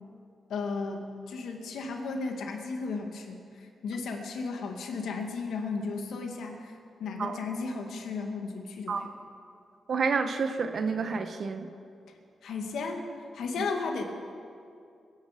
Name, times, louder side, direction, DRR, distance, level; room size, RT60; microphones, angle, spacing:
voice 1, 0.5-9.1 12.4-13.0 13.3-14.0, left 4 dB, 80° left, 3 dB, 1.9 m, -34 dB
voice 2, 9.9-11.7 13.6-13.7, right 5 dB, 60° right, 8 dB, 1.0 m, -29 dB
22.5 x 10.0 x 5.1 m, 2.4 s
cardioid pair, 80°, 0 cm